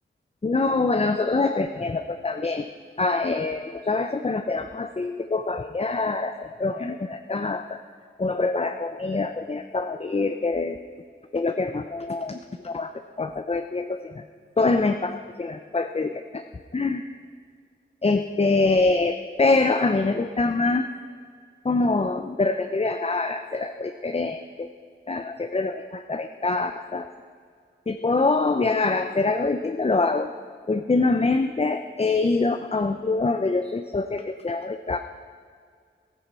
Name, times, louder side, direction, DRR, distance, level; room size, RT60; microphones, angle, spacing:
voice 1, 0.4-2.7 3.0-7.8 8.2-10.8 11.3-12.4 12.6-12.9 13.2-14.2 14.6-16.4 16.7-17.0 18.0-20.9 21.6-24.7 25.1-27.1 27.9-30.3 30.7-35.0, left 3 dB, 30° left, 7 dB, 0.7 m, -25 dB
15.0 x 14.0 x 5.7 m, 2.1 s
wide cardioid pair, 65°, 20 cm